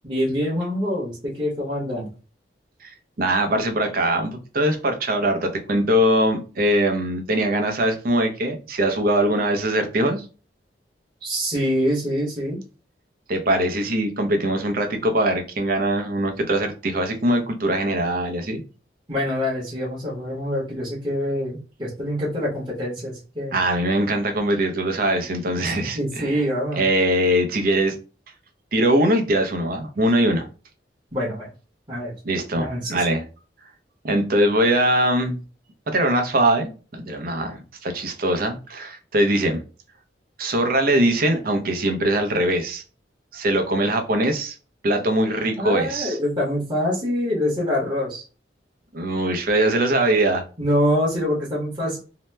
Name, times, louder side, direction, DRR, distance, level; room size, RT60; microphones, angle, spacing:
voice 1, 0.0-2.1 11.2-12.6 19.1-23.5 25.6-26.8 31.1-31.5 31.9-32.1 32.5-33.0 45.6-48.2 50.6-52.0, equal, 25° right, -6 dB, 1.0 m, -25 dB
voice 2, 3.2-10.2 13.3-18.6 23.5-26.3 26.8-28.0 28.7-30.5 32.2-33.2 34.0-35.4 35.9-39.6 40.4-42.8 43.3-44.5 44.8-46.2 48.9-50.4, right 1 dB, 55° right, 5 dB, 0.6 m, -22 dB
2.8 x 2.1 x 3.2 m, 0.35 s
head